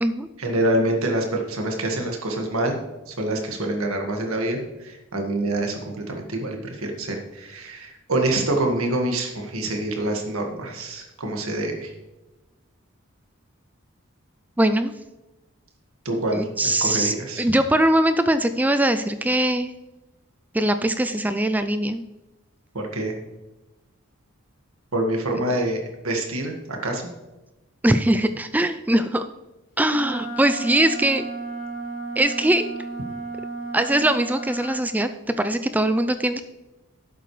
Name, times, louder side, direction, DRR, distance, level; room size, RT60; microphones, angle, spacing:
voice 1, 0.4-2.8 3.1-11.9 16.1-17.6 22.7-23.2 24.9-27.0, right 1 dB, 80° right, 2 dB, 1.8 m, -26 dB
voice 2, 14.6-14.9 16.3-19.7 20.5-22.0 25.3-25.4 27.8-29.2 29.8-31.2 32.2-32.7 33.7-35.1 35.4-36.4, right 1 dB, 5° right, 10 dB, 0.3 m, -21 dB
Wind instrument woodwind instrument, 29.9-34.8, right 3 dB, 50° left, 2.9 m, -33 dB
11.0 x 7.8 x 3.2 m, 1.1 s
head